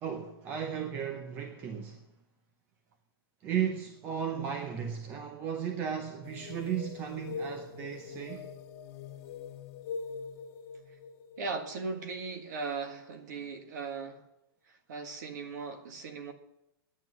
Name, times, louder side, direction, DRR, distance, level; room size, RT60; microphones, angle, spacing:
voice 1, 0.0-2.1 3.4-8.5, right 8 dB, 15° right, 0.7 m, -35 dB
sound 1, 6.2-12.7, left 5 dB, 35° left, 1.5 m, -43 dB
voice 2, 11.4-14.2 14.7-16.3, right 4 dB, 45° right, 1.8 m, -38 dB
10.5 x 9.2 x 9.7 m
hypercardioid pair, 175°, 13 cm